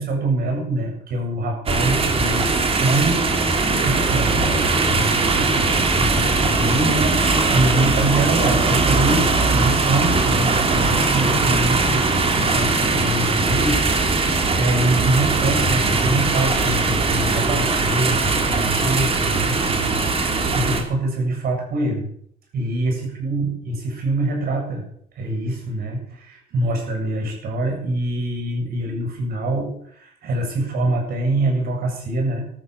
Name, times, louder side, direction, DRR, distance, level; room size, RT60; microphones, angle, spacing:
voice 1, 0.0-3.2 3.6-12.1 12.3-22.1 22.5-24.8 25.2-32.5, right 2 dB, 65° right, 2 dB, 7.9 m, -24 dB
sound 1, 1.7-20.8, right 3 dB, 35° right, 3.3 m, -20 dB
14.0 x 13.0 x 6.8 m, 0.65 s
cardioid pair, 110°, 17 cm